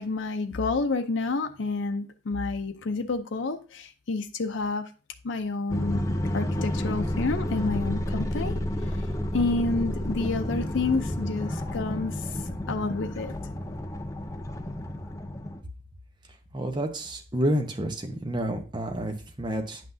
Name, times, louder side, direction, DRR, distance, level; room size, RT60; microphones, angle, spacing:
voice 1, 0.0-4.9 5.2-8.5 8.8-9.1 9.3-12.4 12.7-13.3, left 3 dB, 70° left, 6 dB, 0.6 m, -29 dB
sound 1, 5.7-15.6, left 1 dB, 15° left, 0.5 m, -31 dB
voice 2, 16.5-19.8, right 1 dB, 25° right, 5 dB, 0.8 m, -29 dB
9.3 x 5.8 x 2.7 m, 0.34 s
head